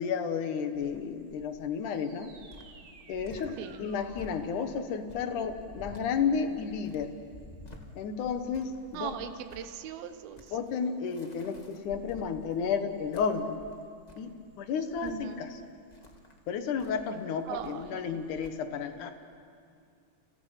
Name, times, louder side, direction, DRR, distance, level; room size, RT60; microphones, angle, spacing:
voice 1, 0.0-2.3 3.1-7.1 8.0-9.3 10.5-13.6 14.2-15.6 16.5-19.1, left 6 dB, 65° left, 8 dB, 2.5 m, -32 dB
Cricket, 0.7-18.5, left 1 dB, 25° left, 0.8 m, -52 dB
sound 1, 1.9-6.9, right 4 dB, 45° right, 2.3 m, -55 dB
voice 2, 3.6-3.9 8.9-10.5 15.0-15.5 17.5-18.0, right 9 dB, 80° right, 9 dB, 2.9 m, -39 dB
30.0 x 29.5 x 5.8 m, 2.3 s
omnidirectional pair, 4.4 m